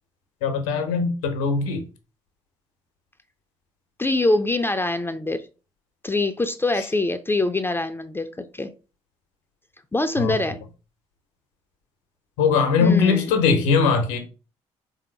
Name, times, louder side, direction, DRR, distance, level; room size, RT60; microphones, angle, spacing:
voice 1, 0.4-1.8 10.2-10.4 12.4-14.2, left 5 dB, 70° left, 0.8 m, -20 dB
voice 2, 4.0-5.5 6.0-8.7 9.9-10.6 12.8-13.3, left 2 dB, 15° left, 0.5 m, -24 dB
3.7 x 2.7 x 4.3 m
figure-of-eight pair, 45°, 15 cm